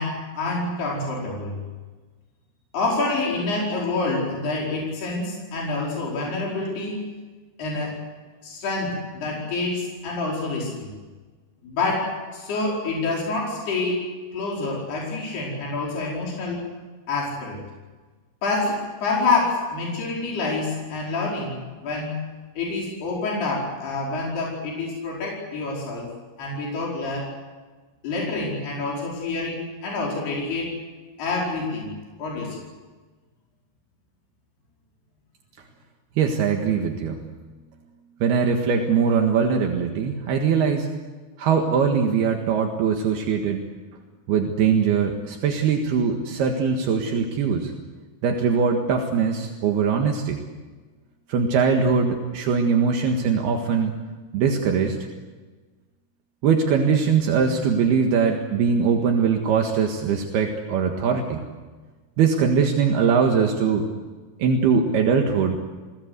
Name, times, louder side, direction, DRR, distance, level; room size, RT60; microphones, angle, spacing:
voice 1, 0.0-1.5 2.7-7.0 7.6-8.0 8.4-10.9 11.6-14.1 14.3-16.7 17.1-17.6 18.4-21.6 21.8-22.2 22.6-26.1 26.4-27.3 28.0-30.8 31.2-31.9 32.2-32.6, left 3 dB, 75° left, -3 dB, 6.9 m, -27 dB
voice 2, 36.2-37.2 38.2-40.9 41.4-43.7 44.3-47.7 48.2-50.4 51.3-54.0 54.3-55.0 56.4-61.4 62.2-63.9 64.4-65.6, right 6 dB, 75° right, 3 dB, 3.6 m, -21 dB
29.5 x 19.0 x 8.2 m, 1.3 s
omnidirectional pair, 4.7 m